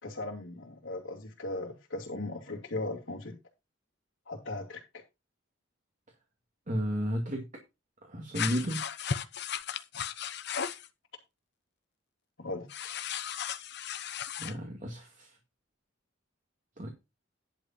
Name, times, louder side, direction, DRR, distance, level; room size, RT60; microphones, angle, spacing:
voice 1, 0.0-3.4 4.3-5.0 12.4-13.0, left 2 dB, 80° left, 2.7 m, -38 dB
voice 2, 6.7-7.5 8.0-8.8 14.4-15.4 16.8-16.9, equal, 40° right, 2.2 m, -33 dB
sound 1, 8.3-10.9 12.7-14.5, left 7 dB, 60° left, 0.9 m, -35 dB
11.0 x 5.1 x 5.9 m
head